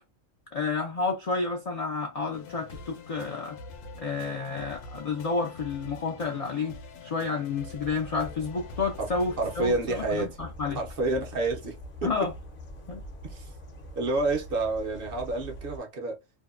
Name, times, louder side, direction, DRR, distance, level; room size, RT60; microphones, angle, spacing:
voice 1, 0.5-3.6 4.0-10.8 12.0-12.3 12.9-13.0, left 4 dB, 70° left, 0.3 m, -30 dB
sound 1, 2.3-9.7, left 4 dB, 90° left, 0.9 m, -45 dB
sound 2, 7.8-15.8, equal, 50° left, 0.7 m, -43 dB
voice 2, 9.4-10.3 10.7-12.3 13.2-13.5 14.0-16.2, right 2 dB, 55° right, 0.7 m, -29 dB
2.7 x 2.1 x 2.3 m
omnidirectional pair, 1.3 m